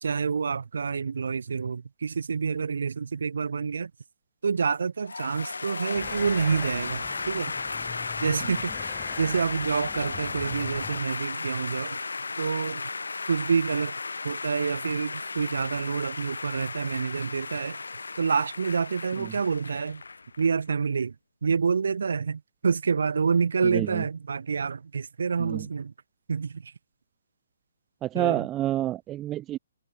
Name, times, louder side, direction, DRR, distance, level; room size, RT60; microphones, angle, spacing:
voice 1, 0.0-3.9 4.4-7.5 8.2-8.7 9.2-12.0 12.4-12.8 13.3-13.9 14.2-17.8 18.2-20.0 20.4-21.1 21.4-25.9 26.3-26.7 28.1-28.5, right 5 dB, 65° right, 1.5 m, -27 dB
sound 1, 5.1-20.6, left 4 dB, 75° left, 1.8 m, -35 dB
sound 2, 5.9-11.0, left 12 dB, 15° left, 1.8 m, -44 dB
voice 2, 23.6-24.0 25.4-25.7 28.0-29.6, right 13 dB, 20° right, 0.4 m, -28 dB
figure-of-eight pair, 135°, 0 cm